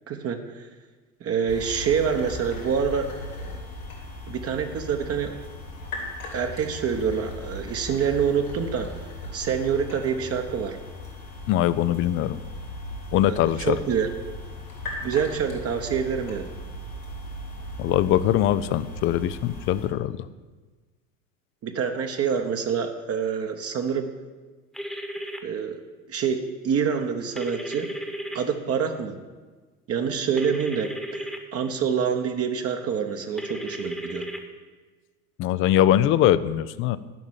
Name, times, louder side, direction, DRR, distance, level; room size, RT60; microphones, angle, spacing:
voice 1, 0.1-0.7 1.2-3.1 4.3-5.3 6.3-8.9 9.3-10.8 13.2-14.1 15.0-16.5 21.6-24.1 25.4-25.8 26.1-27.9 28.3-29.2 29.9-34.3, right 7 dB, 30° right, 5 dB, 1.0 m, -26 dB
sound 1, 1.5-19.9, left 1 dB, 80° left, 3.3 m, -38 dB
voice 2, 11.5-12.4 13.1-13.8 17.8-20.2 35.4-37.0, left 12 dB, 30° left, 16 dB, 0.4 m, -22 dB
sound 2, 24.7-25.4 27.4-28.4 30.4-31.4 33.4-34.4, equal, ahead, 1.2 m, -34 dB
11.0 x 6.0 x 8.9 m, 1.3 s
figure-of-eight pair, 70°, 44 cm